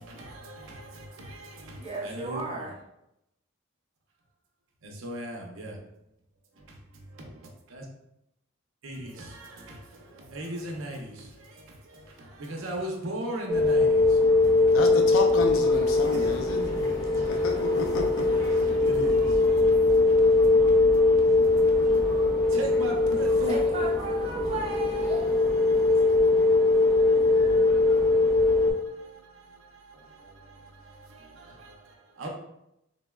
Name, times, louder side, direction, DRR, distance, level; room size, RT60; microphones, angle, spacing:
voice 1, 0.0-2.7 4.8-5.8 6.5-7.9 8.8-14.2 14.5-14.8 16.1-23.6 25.0-32.3, right 1 dB, 75° right, 0.6 m, -40 dB
voice 2, 1.8-2.7 23.5-25.3, right 3 dB, 30° right, 0.7 m, -35 dB
sound 1, 13.5-28.7, left 3 dB, 20° left, 0.6 m, -22 dB
voice 3, 14.7-16.6 17.2-18.3 19.0-19.1, left 3 dB, 75° left, 0.4 m, -31 dB
3.9 x 2.1 x 2.2 m
head